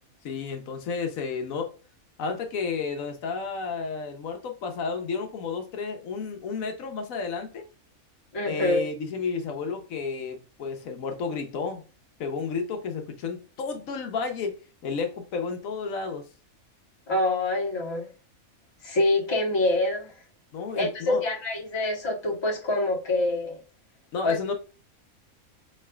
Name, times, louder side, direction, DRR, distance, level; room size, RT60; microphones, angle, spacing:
voice 1, 0.2-1.7 2.2-7.7 8.5-11.8 12.2-14.5 14.8-16.2 20.5-21.2 24.1-24.5, left 5 dB, 80° left, 1.1 m, -31 dB
voice 2, 8.3-8.8 17.1-18.1 18.8-20.1 20.8-23.6 24.2-24.4, left 2 dB, 20° left, 0.9 m, -25 dB
4.5 x 3.2 x 2.2 m
omnidirectional pair, 1.5 m